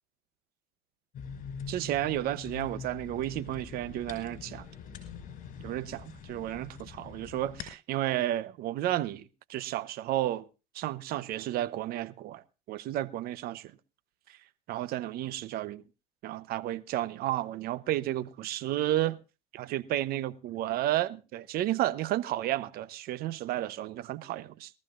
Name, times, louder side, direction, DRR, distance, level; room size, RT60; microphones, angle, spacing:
sound 1, 1.1-7.7, left 6 dB, 45° left, 5.5 m, -44 dB
voice 1, 1.7-4.7 5.6-9.2 9.5-10.5 10.7-12.4 12.7-13.7 14.7-15.8 16.2-19.2 19.5-24.7, right 14 dB, 55° right, 0.8 m, -32 dB
22.0 x 14.0 x 2.5 m
supercardioid pair, 100°, 18 cm